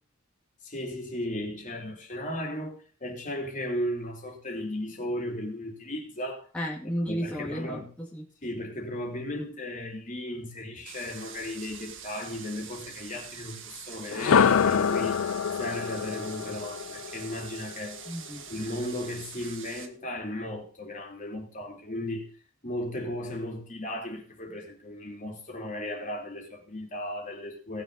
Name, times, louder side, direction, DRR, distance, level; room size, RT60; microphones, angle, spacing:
voice 1, 0.6-2.8 3.0-6.5 7.1-7.9 8.4-15.2 15.6-18.0 18.5-22.3 22.6-27.8, left 1 dB, 40° left, 3.7 m, -35 dB
voice 2, 6.5-8.2 18.1-18.4, equal, 5° left, 2.5 m, -33 dB
sound 1, 10.9-19.9, right 7 dB, 65° right, 1.7 m, -45 dB
sound 2, 14.1-18.1, left 7 dB, 70° left, 0.5 m, -26 dB
19.0 x 7.0 x 4.1 m
head